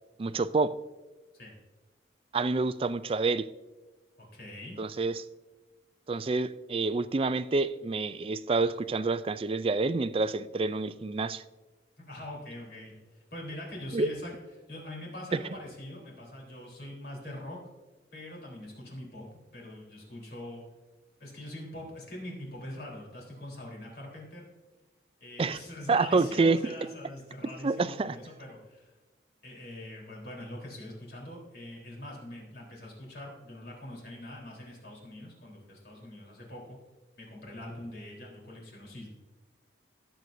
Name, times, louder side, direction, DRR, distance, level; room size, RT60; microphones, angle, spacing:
voice 1, 0.2-0.7 2.3-3.5 4.8-5.2 6.1-11.4 13.9-14.1 25.4-25.6 25.9-26.6 27.6-28.2, right 3 dB, 30° right, 14 dB, 0.4 m, -27 dB
voice 2, 4.2-4.8 12.0-14.4 14.7-17.6 18.1-20.6 21.2-24.5 25.2-28.9 29.4-36.8 37.2-39.1, left 1 dB, 60° left, -3 dB, 3.8 m, -43 dB
18.5 x 7.9 x 2.7 m, 1.2 s
head